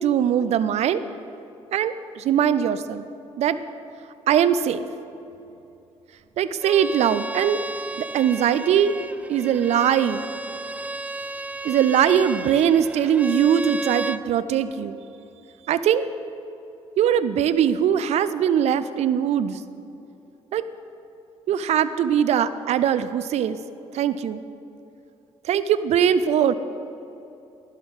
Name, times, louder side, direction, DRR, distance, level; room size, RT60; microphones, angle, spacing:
voice 1, 0.0-1.0 1.7-3.0 3.4-3.6 4.3-4.9 6.4-7.7 8.0-8.9 9.3-10.2 11.6-15.0 15.7-16.1 17.0-19.6 20.5-20.6 21.5-23.6 23.9-24.4 25.4-26.6, right 9 dB, 70° right, 14 dB, 0.4 m, -21 dB
Bowed string instrument, 6.6-14.2, right 2 dB, 10° right, 0.3 m, -33 dB
13.0 x 11.0 x 3.6 m, 2.8 s
cardioid pair, 95°, 12 cm